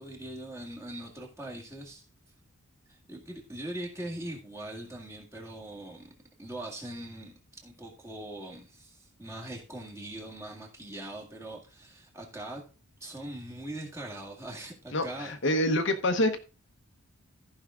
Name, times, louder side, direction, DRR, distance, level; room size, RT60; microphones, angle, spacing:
voice 1, 0.0-2.0 2.9-6.1 6.4-12.6 13.0-15.3, right 1 dB, 10° right, 2.0 m, -41 dB
voice 2, 14.9-16.4, left 1 dB, 55° left, 1.0 m, -26 dB
14.5 x 5.6 x 3.7 m
head